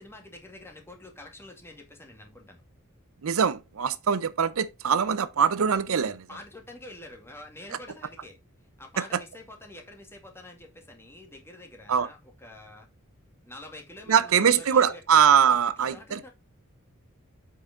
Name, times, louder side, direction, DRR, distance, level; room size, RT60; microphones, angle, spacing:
voice 1, 0.0-2.6 6.3-8.4 8.8-12.9 13.4-15.2 15.8-16.3, left 2 dB, 10° left, 2.2 m, -46 dB
voice 2, 3.2-6.3 9.0-9.2 11.9-12.1 14.1-16.3, right 7 dB, 70° right, 0.5 m, -22 dB
8.1 x 5.6 x 3.6 m
head